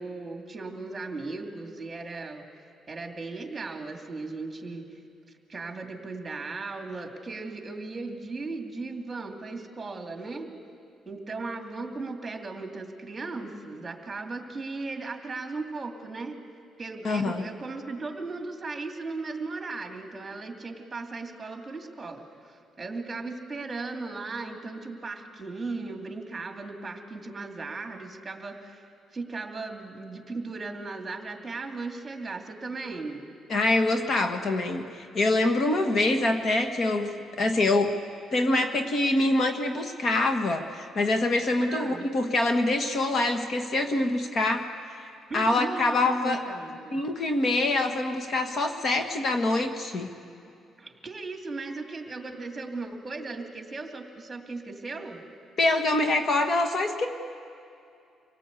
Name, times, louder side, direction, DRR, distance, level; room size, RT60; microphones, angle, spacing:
voice 1, 0.0-2.5 2.9-5.0 5.5-10.5 11.1-16.4 16.8-28.9 29.1-33.3 41.6-42.1 45.3-47.0 50.8-55.2, right 3 dB, 20° right, 3 dB, 2.6 m, -37 dB
voice 2, 17.0-17.4 33.5-38.0 38.3-44.7 45.3-46.4 46.9-50.1 55.6-57.1, left 2 dB, 50° left, 5 dB, 1.6 m, -25 dB
26.0 x 18.0 x 8.4 m, 2.5 s
cardioid pair, 110°, 0 cm